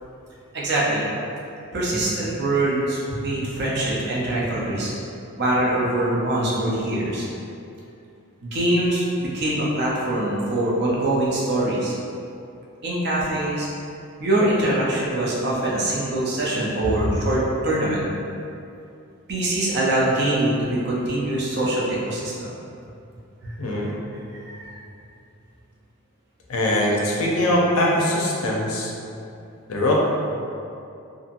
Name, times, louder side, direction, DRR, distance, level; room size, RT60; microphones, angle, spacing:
voice 1, 0.5-1.1 1.7-4.9 5.4-7.3 8.4-11.9 12.8-13.7 14.2-18.0 19.3-22.5 23.4-23.9 24.3-24.8, right 1 dB, 50° right, -6 dB, 0.6 m, -23 dB
voice 2, 26.5-28.9 29.7-29.9, left 1 dB, 85° left, -3 dB, 0.5 m, -22 dB
2.8 x 2.5 x 2.5 m, 2.6 s
head